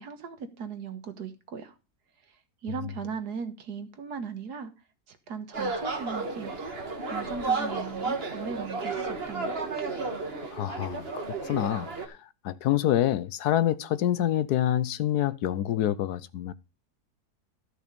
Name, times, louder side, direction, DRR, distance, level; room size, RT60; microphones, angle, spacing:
voice 1, 0.0-1.8 2.3-4.7 5.1-6.7 7.0-9.7, right 6 dB, 90° right, 1.9 m, -38 dB
sound 1, 5.5-12.1, right 4 dB, 40° right, 1.9 m, -32 dB
voice 2, 10.5-11.1 11.4-12.2 12.4-16.5, left 12 dB, 80° left, 1.3 m, -26 dB
13.5 x 6.2 x 5.2 m
omnidirectional pair, 1.7 m